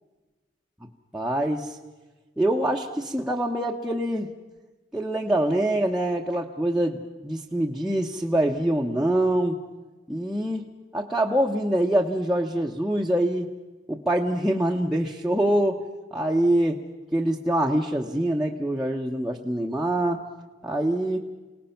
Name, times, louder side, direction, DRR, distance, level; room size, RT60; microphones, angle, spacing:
voice 1, 1.1-1.8 2.4-4.3 4.9-9.6 10.1-10.6 10.9-13.5 13.9-15.8 16.1-16.8 17.1-20.2 20.6-21.2, right 1 dB, ahead, -3 dB, 0.9 m, -24 dB
29.0 x 18.5 x 5.8 m, 1.2 s
head